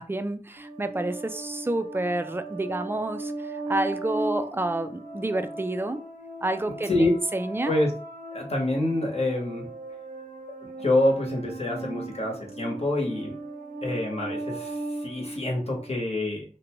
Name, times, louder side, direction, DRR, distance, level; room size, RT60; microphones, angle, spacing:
voice 1, 0.0-6.0 6.4-7.8, right 2 dB, 15° right, 9 dB, 0.3 m, -29 dB
sound 1, 0.6-16.0, right 2 dB, 75° right, 0.5 m, -37 dB
voice 2, 8.3-9.7 10.8-13.3 13.8-16.4, left 1 dB, 50° left, -2 dB, 1.0 m, -26 dB
2.7 x 2.1 x 2.9 m, 0.38 s
wide cardioid pair, 40°, 14 cm